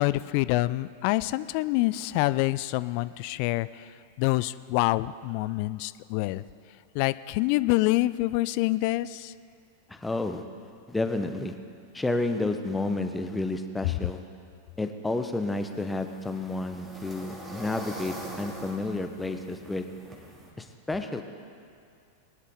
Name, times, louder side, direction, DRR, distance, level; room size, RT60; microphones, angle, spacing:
voice 1, 0.0-3.9 4.2-6.4 6.9-9.3, left 19 dB, 45° left, 17 dB, 0.3 m, -26 dB
voice 2, 9.9-10.4 10.9-11.5 11.9-14.2 14.8-19.9 20.6-21.2, left 2 dB, 10° left, 7 dB, 0.9 m, -30 dB
sound 1, 15.5-20.5, equal, 15° right, 2.3 m, -43 dB
20.5 x 11.0 x 3.7 m, 2.3 s
figure-of-eight pair, 90°, 0 cm